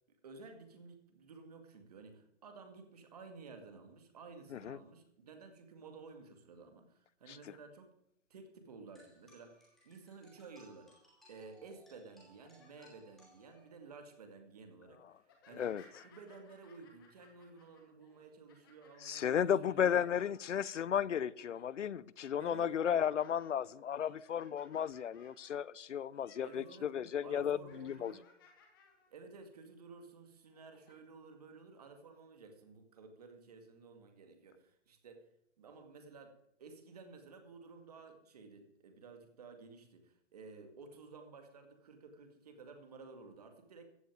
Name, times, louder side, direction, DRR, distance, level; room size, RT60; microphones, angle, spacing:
voice 1, 0.2-7.9 8.3-11.0 11.3-15.7 16.0-20.0 22.4-22.7 26.4-26.9 27.2-28.3 29.1-35.3 35.6-43.9, right 4 dB, 30° right, 6 dB, 2.4 m, -54 dB
sound 1, 8.9-14.0, equal, ahead, 2.6 m, -65 dB
sound 2, 12.2-13.6 14.1-14.4 15.2-20.9 21.3-21.8 22.2-26.9 27.2-29.1 29.5-29.7 30.4-30.9, left 4 dB, 20° left, 2.1 m, -64 dB
voice 2, 19.0-28.1, left 9 dB, 75° left, 22 dB, 0.7 m, -34 dB
15.0 x 7.1 x 9.3 m, 0.73 s
hypercardioid pair, 180°, 37 cm